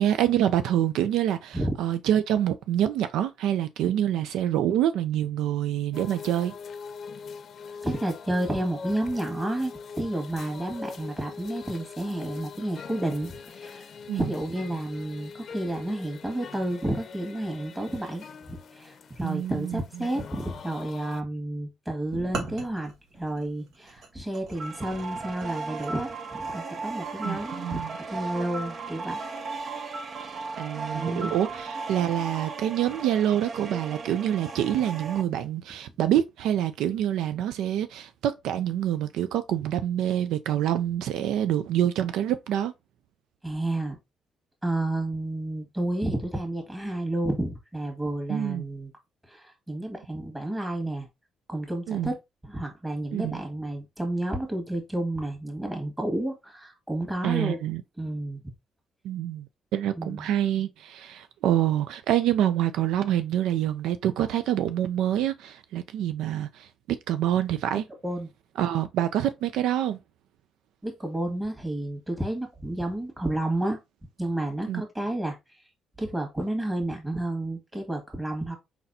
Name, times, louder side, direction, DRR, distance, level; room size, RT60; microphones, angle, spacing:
voice 1, 0.0-6.5 14.1-14.3 19.2-20.1 27.2-27.9 30.6-42.7 48.3-48.7 51.9-52.1 53.1-53.4 57.2-57.8 59.0-59.5 59.7-67.9 68.6-70.0 74.7-74.8, right 11 dB, 85° right, 0.4 m, -26 dB
sound 1, 5.9-21.2, left 5 dB, 60° left, 0.6 m, -42 dB
voice 2, 7.8-13.9 14.1-29.2 30.9-31.3 43.4-44.0 44.6-48.9 49.3-51.1 51.5-52.2 52.4-57.6 58.0-58.4 60.0-60.3 68.0-68.3 70.8-73.8 74.2-75.4 76.0-78.6, right 1 dB, 15° right, 1.8 m, -31 dB
sound 2, 22.1-25.9, right 3 dB, 70° right, 1.3 m, -40 dB
sound 3, 24.5-35.2, right 4 dB, 50° right, 0.7 m, -36 dB
4.3 x 4.0 x 2.7 m
cardioid pair, 90°, 0 cm